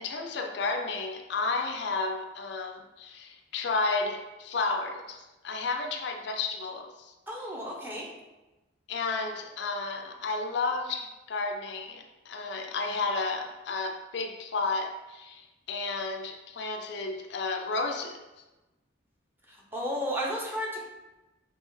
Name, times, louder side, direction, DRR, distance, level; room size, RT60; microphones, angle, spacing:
voice 1, 0.0-7.1 8.9-18.2, left 3 dB, 60° left, 5 dB, 0.4 m, -32 dB
voice 2, 7.3-8.1 19.5-20.9, equal, 10° right, -2 dB, 0.7 m, -33 dB
5.3 x 2.8 x 3.1 m, 1.1 s
head